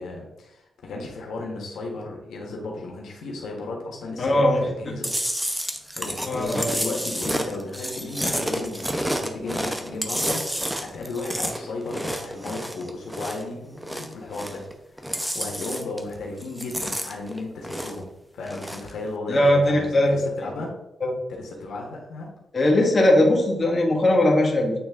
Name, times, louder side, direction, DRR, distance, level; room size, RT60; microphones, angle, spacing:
voice 1, 0.0-5.1 6.0-14.6 15.0-18.0 18.3-20.7 21.3-22.3, left 2 dB, 90° left, -1 dB, 1.4 m, -34 dB
voice 2, 4.2-4.9 6.2-7.0 19.3-20.1 21.0-21.1 22.5-24.7, left 1 dB, 35° left, 0 dB, 1.5 m, -20 dB
Chewing mastication, 5.0-13.5 13.8-14.7 15.0-16.1 16.4-18.1 18.4-18.9, equal, 5° right, 0.7 m, -29 dB
8.6 x 3.3 x 3.6 m, 0.88 s
cardioid pair, 110°, 0 cm